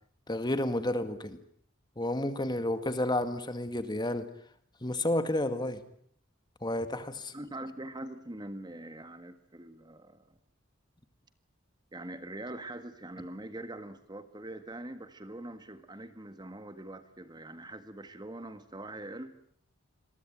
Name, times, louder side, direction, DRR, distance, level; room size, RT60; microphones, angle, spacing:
voice 1, 0.3-1.4 2.0-4.3 4.8-5.8 6.6-7.3, left 1 dB, 20° left, 10 dB, 2.0 m, -31 dB
voice 2, 7.3-10.4 11.9-19.3, right 1 dB, 20° right, 10 dB, 1.7 m, -43 dB
28.0 x 22.5 x 9.1 m, 0.65 s
head